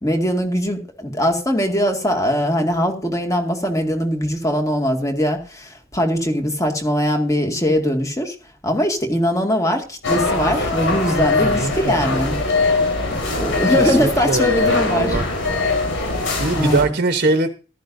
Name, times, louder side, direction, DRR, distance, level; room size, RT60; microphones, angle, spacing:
voice 1, 0.0-8.4 8.6-12.4 13.1-15.2 16.6-17.0, equal, 15° left, 3 dB, 2.1 m, -21 dB
sound 1, 10.0-16.8, left 3 dB, 65° left, 5.2 m, -21 dB
voice 2, 11.4-12.2 13.7-15.2 16.0-17.5, right 3 dB, 45° right, 8 dB, 1.0 m, -22 dB
14.5 x 12.0 x 2.7 m, 0.35 s
head